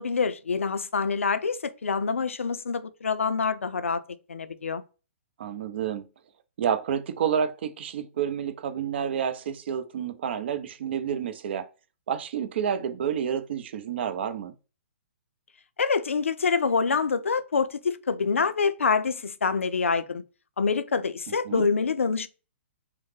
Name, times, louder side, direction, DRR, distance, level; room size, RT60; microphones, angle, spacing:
voice 1, 0.0-4.0 4.3-4.8 15.8-20.2 20.6-22.3, left 5 dB, 85° left, 0.4 m, -26 dB
voice 2, 5.4-6.1 6.6-11.6 12.1-14.5 21.3-21.7, right 8 dB, 60° right, 0.5 m, -29 dB
3.1 x 2.0 x 3.1 m
hypercardioid pair, 130°, 7 cm